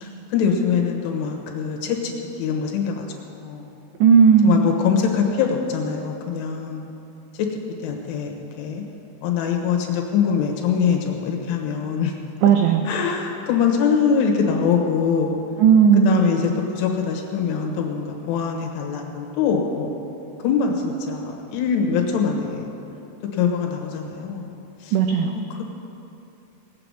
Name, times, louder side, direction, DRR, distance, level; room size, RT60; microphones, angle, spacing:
voice 1, 0.0-2.1 2.4-3.1 3.4-3.7 4.4-6.8 7.3-7.5 7.8-8.8 9.2-12.2 12.9-15.3 16.1-19.9 20.4-22.7 23.3-24.5 24.8-25.6, left 6 dB, 80° left, 2 dB, 3.6 m, -23 dB
voice 2, 4.0-4.6 12.4-12.8 15.6-16.2 24.9-25.3, right 7 dB, 85° right, 4 dB, 2.5 m, -15 dB
18.5 x 6.9 x 7.7 m, 2.9 s
omnidirectional pair, 5.7 m